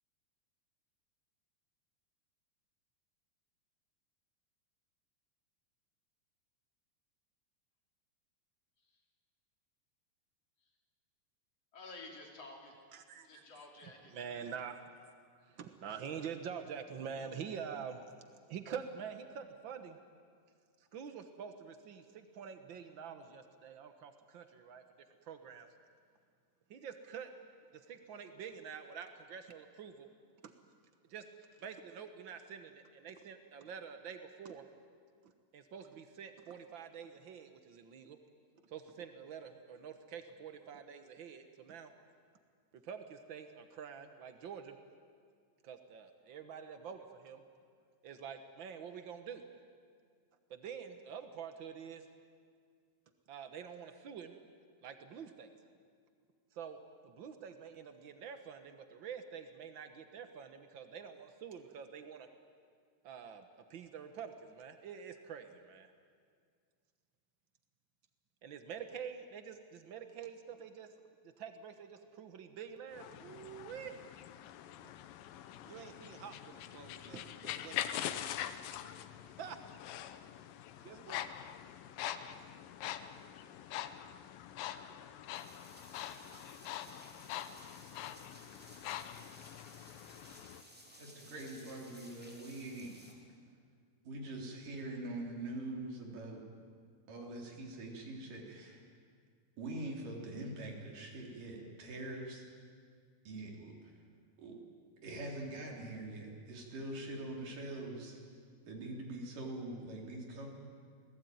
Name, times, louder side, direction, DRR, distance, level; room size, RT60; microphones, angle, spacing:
voice 1, 11.7-12.8 13.2-14.2, left 3 dB, 45° left, 1 dB, 3.9 m, -51 dB
voice 2, 12.9-13.4 13.8-14.8 15.4-18.0 18.5-20.0 20.8-24.8 25.2-25.7 26.7-27.3 27.7-30.1 30.4-30.5 31.1-31.3 31.6-34.6 35.2-38.2 38.6-41.9 42.7-44.7 45.6-47.4 48.0-49.4 50.5-52.1 53.3-54.3 54.8-55.5 56.5-56.8 57.0-62.3 63.0-65.9 68.4-70.9 71.4-73.9 75.6-77.8 79.4-79.6 80.8-81.2, right 7 dB, 85° right, 8 dB, 1.0 m, -47 dB
sound 1, 72.9-90.6, left 11 dB, 80° left, 2.6 m, -44 dB
sound 2, 85.3-93.1, equal, 5° right, 2.9 m, -58 dB
voice 3, 91.0-92.9 94.1-96.4 97.1-98.8 99.6-102.5 103.3-103.7 104.4-104.6 105.0-108.2 108.7-110.5, right 2 dB, 70° right, 0 dB, 5.2 m, -43 dB
27.0 x 19.5 x 9.4 m, 2.1 s
omnidirectional pair, 4.0 m